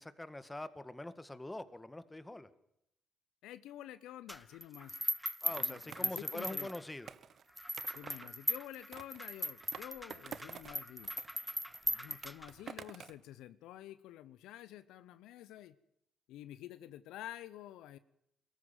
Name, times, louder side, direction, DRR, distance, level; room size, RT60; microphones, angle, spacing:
voice 1, 0.0-2.5 5.4-7.1, left 1 dB, 15° left, 13 dB, 1.9 m, -44 dB
voice 2, 3.4-5.0 5.6-6.7 7.9-11.1 11.8-15.8 16.3-18.0, left 13 dB, 80° left, 15 dB, 0.8 m, -49 dB
sound 1, 4.3-7.1 7.6-12.7, equal, 5° right, 0.9 m, -38 dB
Skateboard, 5.6-8.3 8.9-10.8 11.0-13.2, right 7 dB, 60° right, 1.0 m, -50 dB
22.5 x 14.0 x 9.2 m, 0.78 s
hypercardioid pair, 55°, 0 cm